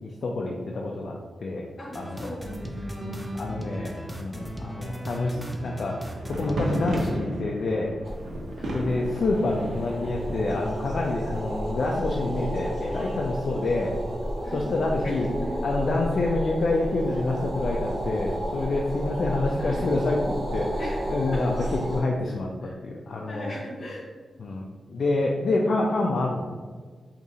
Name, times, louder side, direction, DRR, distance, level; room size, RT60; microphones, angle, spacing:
voice 1, 0.0-1.6 1.9-2.3 3.0-5.4 5.6-6.0 6.3-7.9 8.7-13.9 14.5-15.3 15.6-20.8 21.1-23.6 24.4-24.6 24.9-26.5, left 2 dB, 60° left, -1 dB, 0.4 m, -27 dB
voice 2, 1.8-3.2 8.6-8.9 13.4-13.5 14.4-15.5 19.6-19.9 20.8-21.0 21.3-21.8 22.3-22.8 23.2-24.1, equal, 40° left, -2 dB, 1.0 m, -39 dB
sound 1, 1.9-7.2, equal, 10° right, 0.4 m, -36 dB
sound 2, 6.0-11.0, right 1 dB, 65° right, 0.7 m, -34 dB
sound 3, 8.0-22.0, equal, 45° right, 1.1 m, -32 dB
4.9 x 2.9 x 2.7 m, 1.5 s
wide cardioid pair, 125°, 0 cm